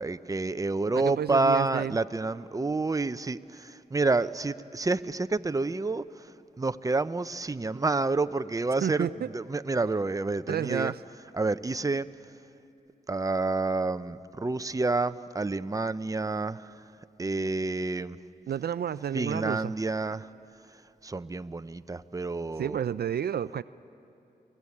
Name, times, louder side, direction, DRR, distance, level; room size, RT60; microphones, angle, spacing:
voice 1, 0.0-3.4 3.9-6.0 6.6-9.1 9.3-10.9 11.3-12.1 13.1-16.6 17.2-18.2 19.1-20.2 21.0-22.8, right 3 dB, 20° right, 13 dB, 0.6 m, -28 dB
voice 2, 1.0-2.0 8.8-9.3 10.5-11.0 18.5-19.7 22.6-23.6, right 9 dB, 60° right, 16 dB, 0.4 m, -30 dB
24.5 x 18.0 x 8.5 m, 2.7 s
cardioid pair, 50°, 18 cm